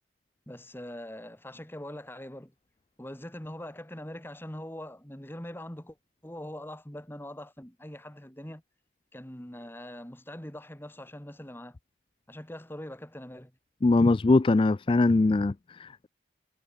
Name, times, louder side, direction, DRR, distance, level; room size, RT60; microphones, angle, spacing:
voice 1, 0.5-2.5 3.0-6.0 6.2-8.6 9.1-11.8 12.3-13.5, left 1 dB, 10° left, 1.6 m, -42 dB
voice 2, 13.8-16.1, left 3 dB, 25° left, 0.3 m, -22 dB
head